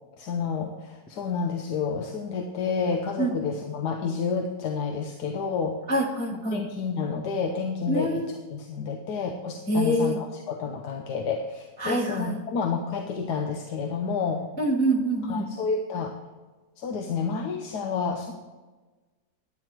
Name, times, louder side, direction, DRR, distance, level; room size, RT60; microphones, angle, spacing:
voice 1, 0.2-5.8 6.5-14.5 15.2-16.1 16.8-18.3, left 5 dB, 70° left, 4 dB, 1.4 m, -30 dB
voice 2, 5.9-6.6 7.9-8.4 9.7-10.2 11.8-12.4 14.6-15.5, right 1 dB, 5° left, -1 dB, 0.9 m, -25 dB
11.0 x 9.6 x 4.5 m, 1.3 s
omnidirectional pair, 1.8 m